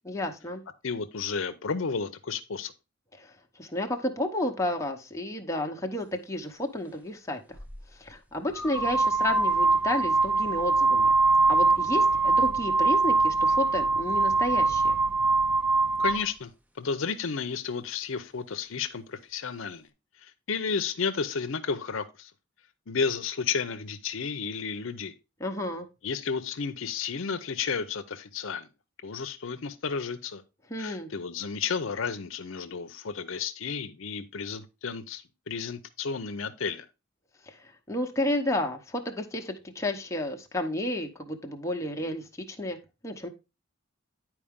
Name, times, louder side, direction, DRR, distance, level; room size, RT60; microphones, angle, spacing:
voice 1, 0.0-0.6 3.2-3.3 3.6-7.4 8.0-11.1 11.5-14.9 25.4-25.9 30.7-31.1 37.5-42.8 43.0-43.3, left 1 dB, 15° left, 0.8 m, -31 dB
voice 2, 0.8-2.7 16.0-16.5 16.8-19.9 20.2-22.3 22.9-25.1 26.0-28.7 29.0-30.4 30.8-36.9, left 5 dB, 70° left, 0.6 m, -32 dB
sound 1, 7.6-7.8 8.5-16.3, right 3 dB, 5° right, 0.5 m, -23 dB
9.9 x 4.6 x 3.6 m
head